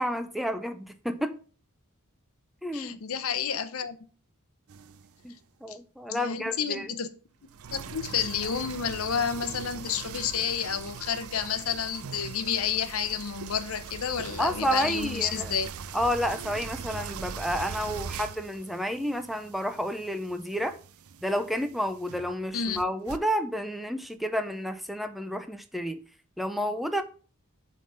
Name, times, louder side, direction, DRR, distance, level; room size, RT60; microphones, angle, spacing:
voice 1, 0.0-1.4 2.6-3.0 5.2-6.9 14.4-15.5 15.9-20.8 21.2-26.0 26.4-27.0, equal, ahead, 0.5 m, -30 dB
voice 2, 2.7-4.0 5.7-5.8 6.1-7.1 7.7-15.7 22.5-22.8, left 7 dB, 70° left, 0.8 m, -30 dB
sound 1, 4.7-5.2 7.5-23.2, right 6 dB, 75° right, 0.5 m, -41 dB
7.6 x 3.7 x 6.4 m
head